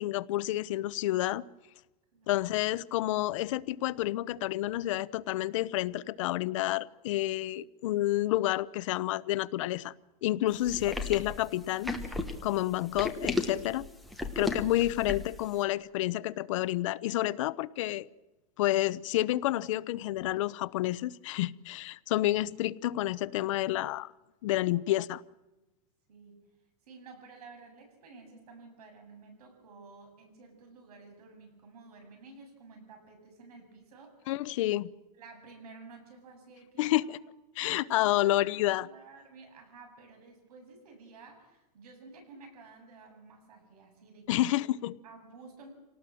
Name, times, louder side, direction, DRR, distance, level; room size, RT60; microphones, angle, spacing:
voice 1, 0.0-1.4 2.3-9.9 10.2-11.9 12.4-13.9 14.4-18.1 18.6-24.1 24.4-25.2 34.3-34.9 36.8-37.2 37.6-38.9 44.3-45.0, left 15 dB, 55° left, 0.7 m, -29 dB
sound 1, 10.7-15.4, left 2 dB, ahead, 1.2 m, -34 dB
voice 2, 26.8-34.3 35.2-37.2 37.6-37.9 38.2-44.5 45.0-45.7, right 4 dB, 75° right, 7.9 m, -52 dB
27.0 x 18.5 x 7.7 m
supercardioid pair, 170°, 20 cm